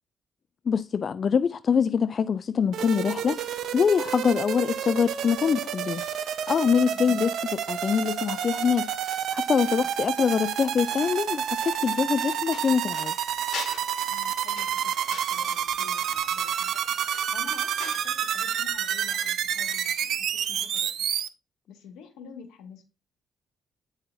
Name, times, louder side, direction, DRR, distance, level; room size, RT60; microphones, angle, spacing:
voice 1, 0.7-6.0 6.5-8.9 9.3-13.1, left 6 dB, 45° left, 0.3 m, -24 dB
sound 1, 2.7-21.3, right 9 dB, 70° right, 0.6 m, -29 dB
sound 2, 10.9-18.2 18.4-18.6, left 6 dB, 65° left, 3.2 m, -43 dB
voice 2, 14.1-16.7 17.3-21.1 21.7-22.8, left 6 dB, 90° left, 1.8 m, -48 dB
9.1 x 5.5 x 2.6 m
cardioid pair, 90°, 0 cm